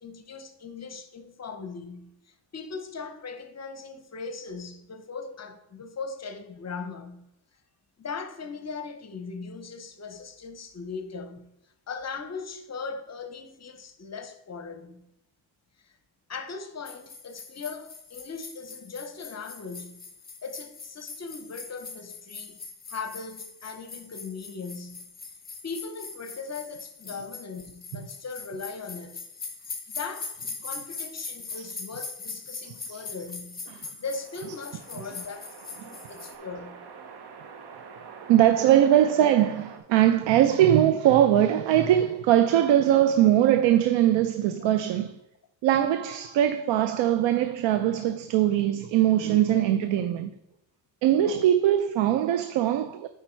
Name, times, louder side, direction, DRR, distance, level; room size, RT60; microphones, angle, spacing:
voice 1, 0.0-7.2 8.0-11.4 11.9-15.0 15.8-16.0 16.3-20.0 20.4-22.6 22.9-25.0 25.6-29.2 29.9-30.4 30.6-33.6 34.0-35.6 35.8-36.9 44.6-44.7 49.5-49.6, left 4 dB, 35° left, 0.9 m, -39 dB
sound 1, 16.8-36.3, left 4 dB, 20° left, 1.5 m, -41 dB
sound 2, 34.0-39.8, right 5 dB, 60° right, 1.2 m, -46 dB
voice 2, 38.3-45.1 45.6-50.3 51.0-53.1, right 11 dB, 85° right, 0.6 m, -21 dB
8.3 x 5.1 x 4.5 m
cardioid pair, 105°, 44 cm